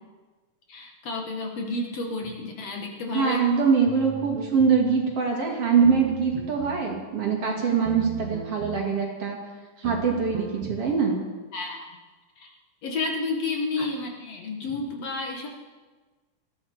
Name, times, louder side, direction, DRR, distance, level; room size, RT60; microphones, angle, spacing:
voice 1, 0.7-3.4 11.5-11.8 12.4-12.5 12.8-15.5, left 3 dB, 55° left, 1 dB, 2.4 m, -31 dB
voice 2, 3.1-9.4 9.8-11.2, right 6 dB, 50° right, -1 dB, 3.2 m, -23 dB
sound 1, 3.9-4.8 5.8-6.9 7.9-8.8 9.8-10.8, right 7 dB, 65° right, 1.9 m, -38 dB
20.0 x 14.5 x 4.4 m, 1.3 s
omnidirectional pair, 3.6 m